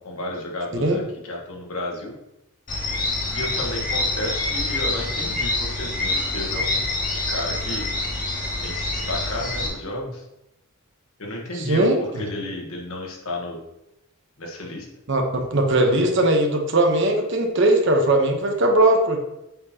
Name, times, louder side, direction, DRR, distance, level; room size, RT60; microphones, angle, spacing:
voice 1, 0.0-2.1 3.3-6.9 7.1-7.8 8.6-10.2 11.2-13.6 14.4-14.9, left 1 dB, 85° left, 0 dB, 1.3 m, -32 dB
sound 1, 2.7-9.7, left 2 dB, 40° left, 1.5 m, -26 dB
voice 2, 11.5-12.2 15.1-19.2, right 1 dB, 55° right, 4 dB, 0.9 m, -19 dB
7.8 x 4.3 x 2.8 m, 0.91 s
head